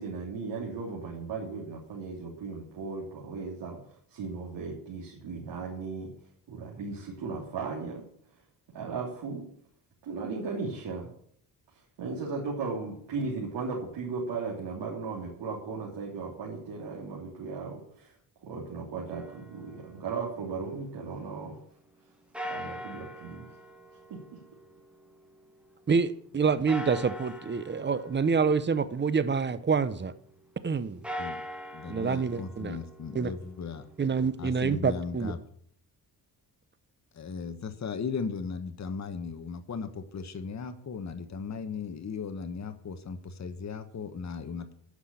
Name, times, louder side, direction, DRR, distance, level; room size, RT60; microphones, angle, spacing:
voice 1, 0.0-6.1 6.5-8.1 8.7-9.5 10.0-11.1 11.7-18.1 18.4-21.6 22.5-23.5 24.1-24.4, right 4 dB, 75° right, -4 dB, 3.2 m, -36 dB
sound 1, 19.1-21.2 22.3-25.7 26.7-29.6 30.9-34.9, equal, 5° right, 1.9 m, -43 dB
voice 2, 25.9-30.1 30.6-31.0 31.9-32.8 33.1-33.3 34.0-35.3, right 5 dB, 25° right, 14 dB, 0.8 m, -27 dB
voice 3, 31.7-33.9 34.4-35.4 37.1-44.7, left 5 dB, 40° left, 8 dB, 1.3 m, -37 dB
9.8 x 6.1 x 8.6 m, 0.64 s
cardioid pair, 90°, 42 cm